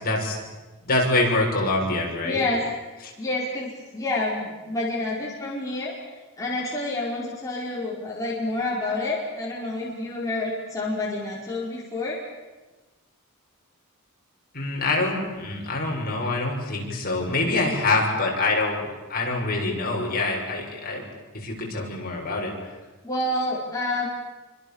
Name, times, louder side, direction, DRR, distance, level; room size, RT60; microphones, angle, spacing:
voice 1, 0.0-0.4 0.8-2.4 3.0-3.1 14.5-21.0 21.3-22.7, left 2 dB, 45° left, -1 dB, 6.9 m, -25 dB
voice 2, 2.2-2.6 3.2-6.0 6.4-12.2 23.0-24.1, left 2 dB, 15° left, -5 dB, 5.0 m, -28 dB
28.0 x 25.5 x 7.3 m, 1.2 s
head